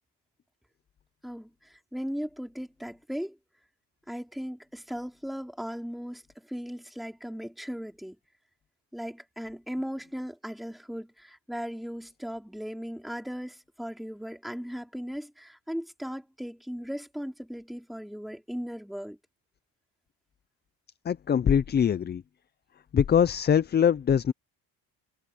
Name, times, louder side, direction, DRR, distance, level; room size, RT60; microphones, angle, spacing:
voice 1, 1.2-3.4 4.1-8.2 8.9-19.2, equal, ahead, 4.5 m, -37 dB
voice 2, 21.1-22.2 22.9-24.3, left 8 dB, 25° left, 0.4 m, -23 dB
cardioid pair, 115°, 41 cm